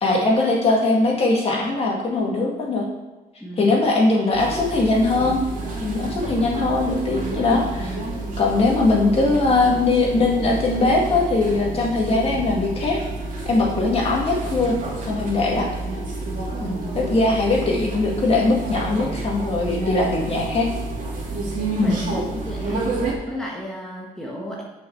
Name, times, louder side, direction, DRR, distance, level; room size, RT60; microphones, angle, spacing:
voice 1, 0.0-2.8 3.6-5.4 5.8-8.0 8.4-13.0 13.5-14.7 15.1-15.7 16.6-20.7 21.8-22.0, left 3 dB, 40° left, -2 dB, 2.0 m, -20 dB
voice 2, 3.4-3.8 16.8-17.2 21.7-22.9 23.3-24.6, left 1 dB, 5° left, -3 dB, 1.2 m, -33 dB
sound 1, 4.3-23.1, right 2 dB, 55° right, 2.6 m, -29 dB
6.6 x 5.6 x 7.1 m, 1.2 s
cardioid pair, 145°, 15 cm